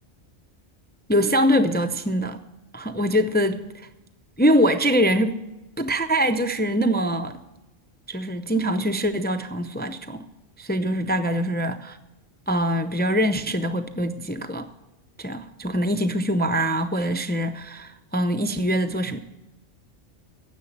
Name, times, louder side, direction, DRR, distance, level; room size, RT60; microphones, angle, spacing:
voice 1, 1.1-2.4 2.7-3.7 4.4-5.4 5.8-7.4 8.1-10.3 10.6-12.0 12.5-14.7 15.2-19.2, equal, 15° left, 8 dB, 0.4 m, -23 dB
10.0 x 7.9 x 9.7 m, 1.0 s
omnidirectional pair, 1.2 m